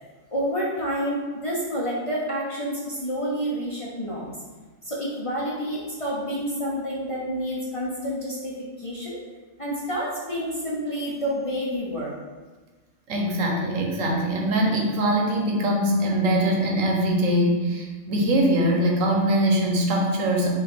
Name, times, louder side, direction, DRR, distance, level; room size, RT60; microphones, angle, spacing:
voice 1, 0.3-4.3 4.8-9.2 9.6-12.1, equal, 35° left, -5 dB, 0.6 m, -29 dB
voice 2, 13.1-20.5, right 1 dB, 85° right, 0 dB, 1.2 m, -22 dB
5.0 x 2.5 x 4.3 m, 1.3 s
omnidirectional pair, 1.3 m